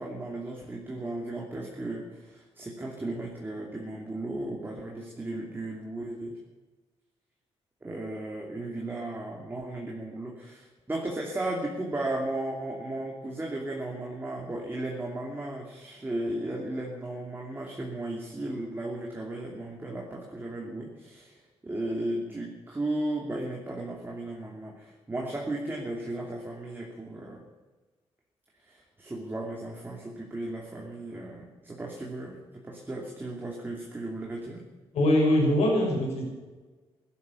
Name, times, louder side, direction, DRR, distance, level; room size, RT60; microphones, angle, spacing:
voice 1, 0.0-6.3 7.8-27.4 28.6-34.6, right 1 dB, 20° right, -1 dB, 2.7 m, -35 dB
voice 2, 34.9-36.2, left 1 dB, 85° left, -1 dB, 5.8 m, -22 dB
16.0 x 12.0 x 7.1 m, 1.3 s
cardioid pair, 110°, 11 cm